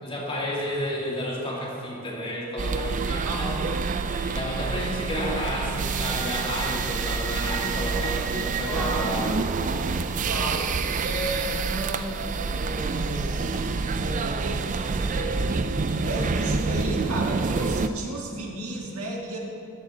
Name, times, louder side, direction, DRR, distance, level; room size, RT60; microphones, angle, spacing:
voice 1, 0.0-3.6 4.3-9.3, equal, 25° left, -4 dB, 2.1 m, -31 dB
sound 1, 2.6-17.9, right 4 dB, 35° right, 0.4 m, -27 dB
voice 2, 3.2-3.8 8.2-9.2 10.3-13.6 14.0-15.7 16.0-19.4, right 1 dB, 70° right, -2 dB, 1.8 m, -34 dB
14.0 x 8.7 x 4.2 m, 2.6 s
head